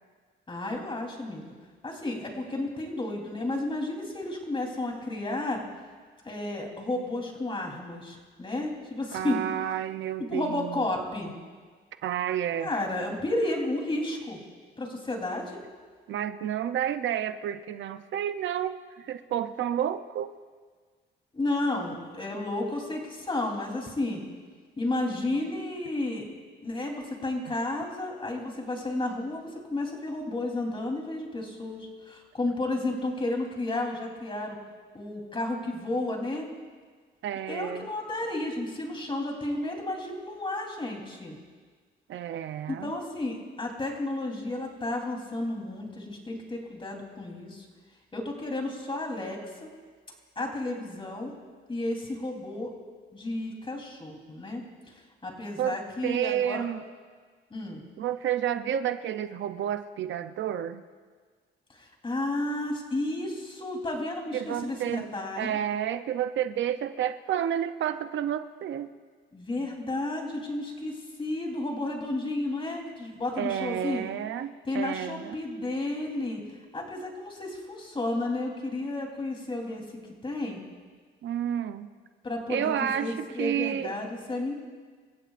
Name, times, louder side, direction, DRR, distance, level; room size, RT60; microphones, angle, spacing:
voice 1, 0.5-1.4 1.8-5.6 6.2-9.4 10.2-11.3 12.6-14.4 14.8-15.6 21.3-24.2 24.8-26.3 26.6-34.6 34.9-36.5 37.5-41.4 42.7-47.7 48.1-49.7 50.4-51.3 51.7-52.7 53.1-54.6 54.9-56.6 57.5-57.8 61.7-65.6 69.3-74.0 74.7-76.4 76.7-79.8 80.2-80.6 82.2-84.5, left 2 dB, 25° left, 1 dB, 3.6 m, -32 dB
voice 2, 9.1-10.8 12.0-12.7 16.1-20.3 37.2-37.9 42.1-42.9 55.6-55.8 56.0-56.8 58.0-60.8 64.3-65.1 65.4-68.9 73.4-75.4 81.2-81.9 82.5-83.9, right 10 dB, 70° right, 10 dB, 0.7 m, -30 dB
27.5 x 15.0 x 2.5 m, 1.5 s
cardioid pair, 90°, 20 cm